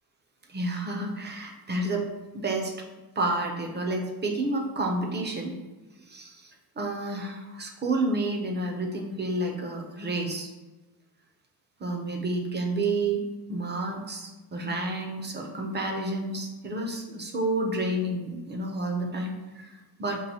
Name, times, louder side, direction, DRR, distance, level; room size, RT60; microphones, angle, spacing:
voice 1, 0.5-2.0 2.3-2.7 3.2-5.5 6.1-10.5 11.8-13.2 13.5-20.2, right 2 dB, 30° right, 2 dB, 0.5 m, -30 dB
5.4 x 2.5 x 2.8 m, 1.1 s
wide cardioid pair, 150°, 38 cm